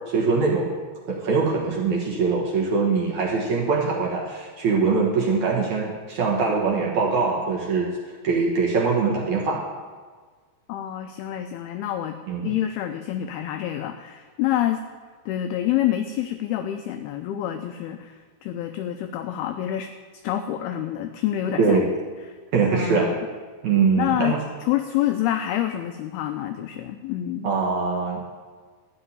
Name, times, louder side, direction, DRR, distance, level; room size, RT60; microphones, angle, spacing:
voice 1, 0.1-0.7 1.1-7.9 8.2-9.6 12.3-12.5 21.6-21.8 22.5-23.1 23.6-24.4 27.4-28.3, right 4 dB, 65° right, -3 dB, 1.9 m, -22 dB
voice 2, 10.7-12.2 12.4-14.8 15.3-19.9 20.2-21.8 22.3-22.4 22.7-23.2 24.0-27.5, left 12 dB, 85° left, 8 dB, 2.2 m, -27 dB
13.5 x 5.9 x 9.5 m, 1.5 s
omnidirectional pair, 5.2 m